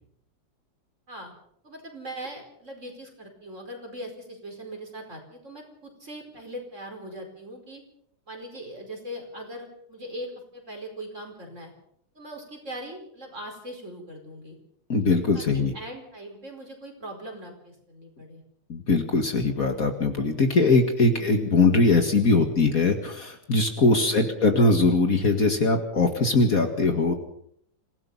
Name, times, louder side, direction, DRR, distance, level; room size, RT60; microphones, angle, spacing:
voice 1, 1.6-7.8 8.3-11.7 12.1-14.6 15.3-18.4 24.0-24.4, right 1 dB, 40° right, 3 dB, 5.1 m, -40 dB
voice 2, 14.9-15.7 18.7-27.1, left 3 dB, 50° left, 4 dB, 2.3 m, -21 dB
27.0 x 17.5 x 5.5 m, 0.67 s
omnidirectional pair, 2.0 m